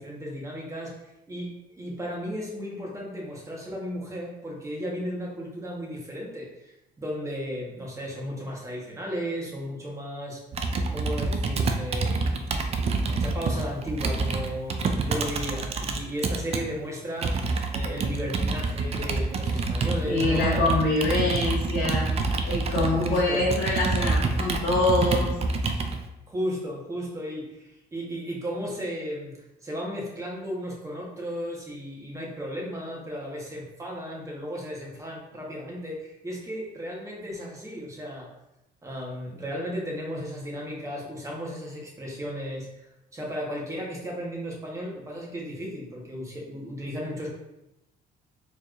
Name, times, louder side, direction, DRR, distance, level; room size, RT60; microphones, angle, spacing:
voice 1, 0.0-6.7 7.0-10.4 10.9-12.6 13.0-17.3 17.7-20.7 21.2-21.3 22.9-23.6 26.3-29.3 29.6-38.3 38.8-47.3, equal, 20° right, -3 dB, 1.1 m, -35 dB
Computer keyboard, 10.5-16.6 17.2-26.0, right 3 dB, 35° right, 0.4 m, -27 dB
voice 2, 20.1-22.0 22.4-25.3, left 2 dB, 65° left, -6 dB, 0.9 m, -25 dB
4.2 x 3.1 x 2.5 m, 0.91 s
cardioid pair, 110°, 17 cm